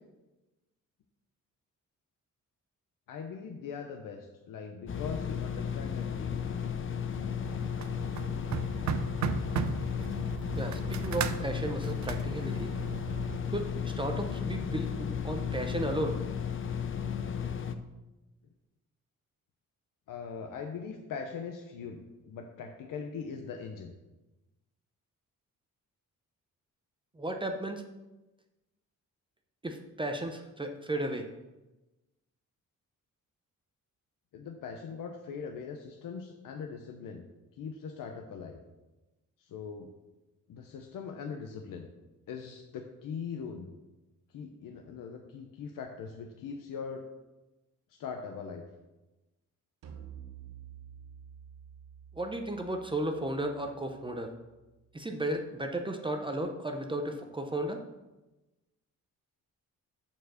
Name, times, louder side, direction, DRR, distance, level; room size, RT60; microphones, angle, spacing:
voice 1, 3.1-6.6 20.1-23.9 34.3-37.3 37.5-38.6 39.4-39.9 40.5-41.9 42.3-43.7 44.3-47.1 47.9-48.7, left 6 dB, 80° left, 3 dB, 0.8 m, -41 dB
sound 1, 4.9-17.8, left 7 dB, 40° left, 0.5 m, -34 dB
sound 2, 7.4-13.4, right 8 dB, 60° right, 0.5 m, -36 dB
voice 2, 10.6-12.7 13.5-16.2 27.2-27.8 29.6-31.3 52.2-54.3 54.9-57.8, right 1 dB, 15° right, 4 dB, 0.6 m, -34 dB
sound 3, 49.8-55.2, right 9 dB, 75° right, 0.9 m, -51 dB
7.0 x 4.6 x 6.2 m, 1.1 s
cardioid pair, 125°, 33 cm